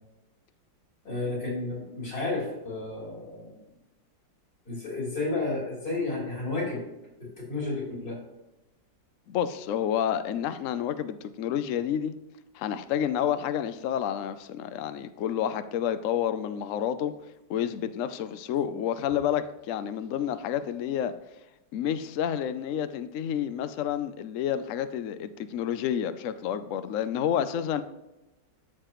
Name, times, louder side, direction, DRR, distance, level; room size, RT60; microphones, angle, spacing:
voice 1, 1.0-3.6 4.7-6.8 7.2-8.2, left 3 dB, 55° left, 4.1 m, -32 dB
voice 2, 9.3-12.2 12.5-17.1 17.5-21.1 21.7-27.8, left 9 dB, 80° left, 0.7 m, -29 dB
13.5 x 6.7 x 3.1 m
omnidirectional pair, 2.0 m